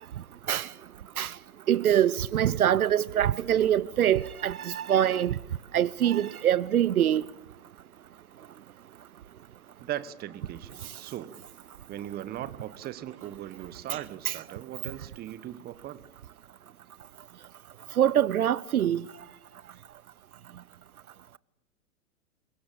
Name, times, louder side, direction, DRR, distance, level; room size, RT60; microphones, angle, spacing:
voice 1, 1.7-5.4 5.7-7.2 13.9-14.0 14.3-14.4 18.0-19.0, right 10 dB, 70° right, 1.0 m, -24 dB
voice 2, 9.8-11.4 11.9-16.1, right 12 dB, 20° right, 1.4 m, -39 dB
28.0 x 23.0 x 8.8 m
hypercardioid pair, 120°, 46 cm